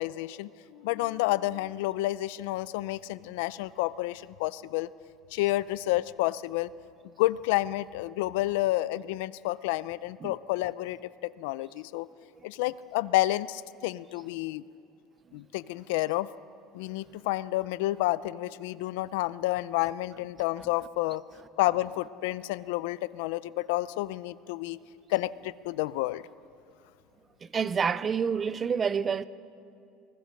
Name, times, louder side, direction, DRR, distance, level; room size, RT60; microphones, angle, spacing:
voice 1, 0.0-4.9 5.3-6.7 7.2-12.1 12.4-14.6 15.3-16.3 16.7-21.2 21.6-24.8 25.1-26.3, left 17 dB, 85° left, 0.5 m, -30 dB
voice 2, 27.4-29.2, right 6 dB, 20° right, 0.5 m, -28 dB
23.5 x 20.0 x 6.6 m
cardioid pair, 155°, 0 cm